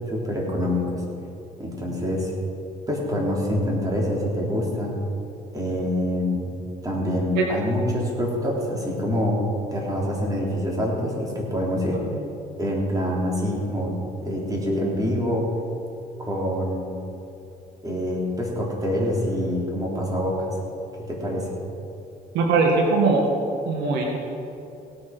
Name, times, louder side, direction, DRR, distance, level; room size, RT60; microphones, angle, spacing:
voice 1, 0.1-1.0 1.6-2.3 2.9-5.0 5.5-6.4 6.8-9.4 9.7-12.0 12.6-13.9 14.2-15.5 16.2-16.9 17.8-20.5 21.1-21.5, equal, 20° right, -3 dB, 3.8 m, -25 dB
voice 2, 22.3-23.3 23.7-24.2, right 4 dB, 90° right, 0 dB, 2.0 m, -20 dB
17.5 x 8.8 x 6.2 m, 2.8 s
cardioid pair, 110°, 17 cm